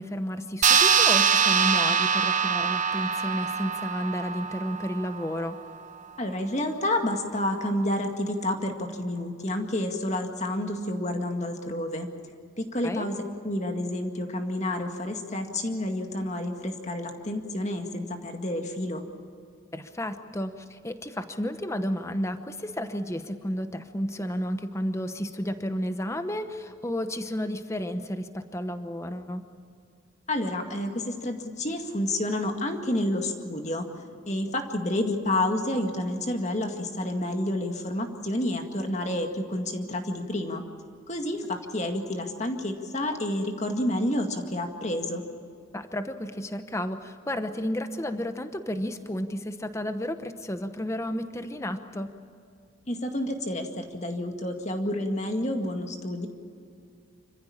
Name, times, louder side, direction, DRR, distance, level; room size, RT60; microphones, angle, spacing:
voice 1, 0.0-5.6 12.8-13.1 19.7-29.4 45.7-52.1, equal, 15° left, 9 dB, 0.9 m, -32 dB
sound 1, 0.6-5.5, right 7 dB, 35° right, 0.9 m, -23 dB
voice 2, 6.2-12.1 12.6-19.0 30.3-33.9 34.3-40.6 41.1-45.2 52.9-56.3, left 1 dB, 35° left, 4 dB, 2.0 m, -29 dB
26.5 x 15.0 x 8.7 m, 2.4 s
head